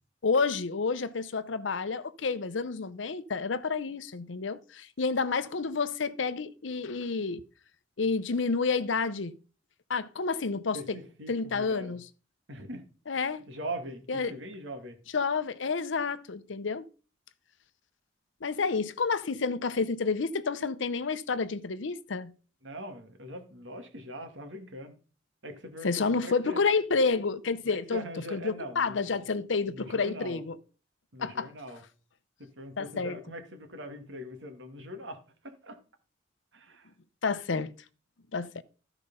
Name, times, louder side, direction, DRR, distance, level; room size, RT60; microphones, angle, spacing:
voice 1, 0.2-7.4 8.0-9.3 9.9-11.0 11.3-12.1 13.1-13.4 14.1-14.4 15.1-16.9 18.4-22.3 25.8-30.6 31.2-31.5 32.8-33.2 37.2-37.7 38.3-38.6, left 4 dB, 75° left, 0.7 m, -29 dB
voice 2, 10.7-11.9 12.5-12.8 13.5-15.0 22.6-25.0 25.4-26.6 27.7-29.2 29.7-30.4 31.1-31.8 32.6-35.2 35.6-35.8 36.5-36.9, equal, 70° right, 2.2 m, -41 dB
14.0 x 4.9 x 5.5 m
head